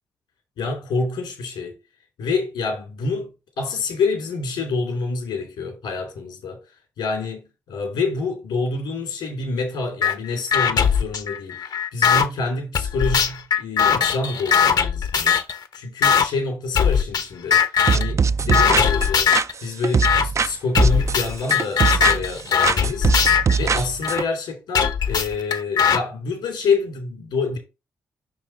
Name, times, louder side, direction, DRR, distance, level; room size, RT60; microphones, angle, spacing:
voice 1, 0.6-1.8 2.2-3.3 3.6-6.6 7.0-15.4 15.7-17.6 17.9-23.1 23.6-27.6, left 4 dB, 80° left, 2.5 m, -27 dB
sound 1, 10.0-10.1 10.5-12.3 12.7-15.6 16.0-16.3 16.7-17.2 17.5-18.1 18.5-19.5 20.0-20.2 20.7-24.2 24.7-26.0, left 7 dB, 65° left, 0.9 m, -19 dB
sound 2, 17.9-20.5 20.8-22.4 22.6-24.2, right 5 dB, 40° right, 0.4 m, -21 dB
5.6 x 4.8 x 4.2 m
supercardioid pair, 45°, 8 cm